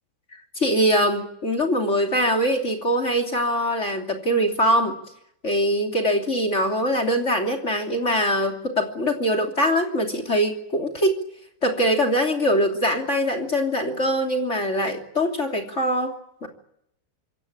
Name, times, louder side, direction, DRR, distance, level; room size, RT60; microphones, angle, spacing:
voice 1, 0.6-5.0 5.4-11.1 11.6-16.5, equal, 20° left, 6 dB, 2.6 m, -23 dB
26.5 x 23.0 x 8.9 m, 0.77 s
omnidirectional pair, 4.9 m